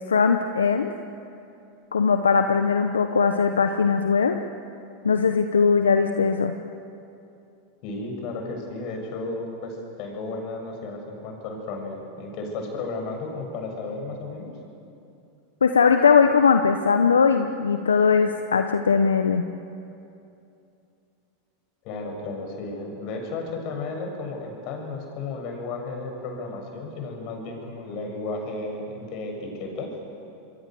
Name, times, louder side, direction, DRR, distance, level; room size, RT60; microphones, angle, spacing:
voice 1, 0.1-0.9 1.9-4.4 5.0-6.5 15.6-19.4, left 5 dB, 90° left, 7 dB, 0.9 m, -20 dB
voice 2, 7.8-14.5 21.8-29.9, left 3 dB, 55° left, 2 dB, 7.3 m, -33 dB
27.5 x 22.5 x 7.8 m, 2.7 s
hypercardioid pair, 95°, 0 cm